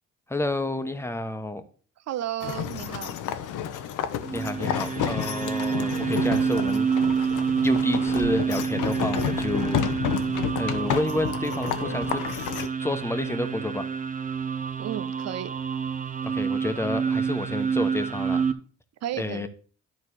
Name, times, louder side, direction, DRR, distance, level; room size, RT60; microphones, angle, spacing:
voice 1, 0.3-1.6 4.3-6.9 7.6-9.9 10.6-12.2 12.8-13.9 16.2-18.4 19.2-19.5, left 2 dB, 10° left, 9 dB, 1.2 m, -30 dB
voice 2, 2.1-3.1 14.8-15.5 19.0-19.4, right 12 dB, 60° right, 14 dB, 0.7 m, -32 dB
sound 1, 2.4-12.7, left 9 dB, 85° left, 0.9 m, -31 dB
sound 2, 4.2-18.5, right 6 dB, 25° right, 0.9 m, -28 dB
11.0 x 4.2 x 6.3 m, 0.41 s
cardioid pair, 90°, 30 cm